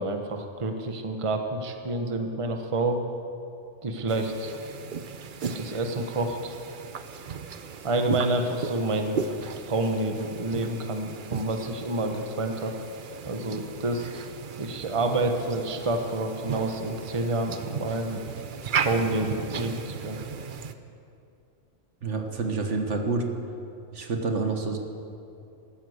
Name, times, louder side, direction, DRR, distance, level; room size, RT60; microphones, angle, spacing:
voice 1, 0.0-3.0 3.8-4.5 5.4-6.5 7.8-9.3 9.6-12.7 13.2-14.1 14.6-18.2 18.8-20.2, right 2 dB, 30° right, 5 dB, 1.0 m, -28 dB
sound 1, 4.1-20.7, right 6 dB, 50° right, 0.8 m, -36 dB
voice 2, 22.0-23.3 23.9-24.8, right 4 dB, 70° right, 4 dB, 1.7 m, -28 dB
14.0 x 13.0 x 7.9 m, 2.6 s
omnidirectional pair, 1.3 m